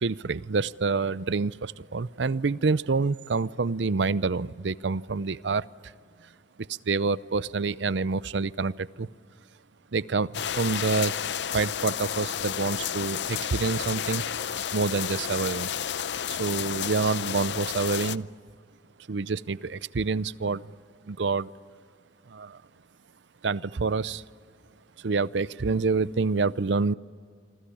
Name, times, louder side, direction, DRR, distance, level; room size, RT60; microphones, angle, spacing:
voice 1, 0.0-5.7 6.7-9.1 9.9-11.1 11.5-14.2 14.7-15.7 16.3-18.3 19.1-20.6 21.1-21.5 22.3-22.6 23.4-24.2 25.0-26.9, right 4 dB, 70° right, 18 dB, 0.6 m, -27 dB
sound 1, 10.3-18.2, left 8 dB, 70° left, 0.6 m, -31 dB
27.5 x 25.0 x 8.6 m, 2.2 s
head